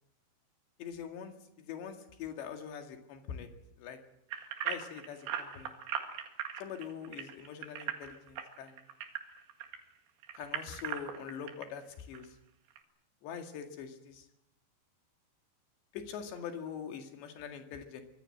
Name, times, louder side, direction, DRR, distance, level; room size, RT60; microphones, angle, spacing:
voice 1, 0.8-3.5 3.8-4.0 4.6-5.8 6.6-8.8 10.3-12.3 13.2-14.3 15.9-18.0, left 7 dB, 90° left, 5 dB, 4.3 m, -43 dB
sound 1, 4.3-9.8 10.2-11.7 12.1-12.3 12.8-12.9, right 9 dB, 90° right, 4.2 m, -38 dB
24.5 x 20.5 x 7.8 m, 0.81 s
omnidirectional pair, 4.9 m